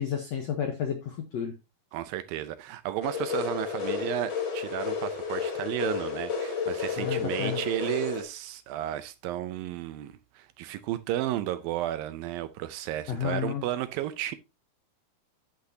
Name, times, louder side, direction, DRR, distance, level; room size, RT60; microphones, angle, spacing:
voice 1, 0.0-1.5 7.0-7.6 13.1-13.6, left 8 dB, 70° left, 1.6 m, -31 dB
voice 2, 1.9-14.4, right 13 dB, 80° right, 2.2 m, -33 dB
sound 1, 3.0-8.2, left 6 dB, 35° left, 3.0 m, -32 dB
10.5 x 8.2 x 2.8 m
omnidirectional pair, 4.5 m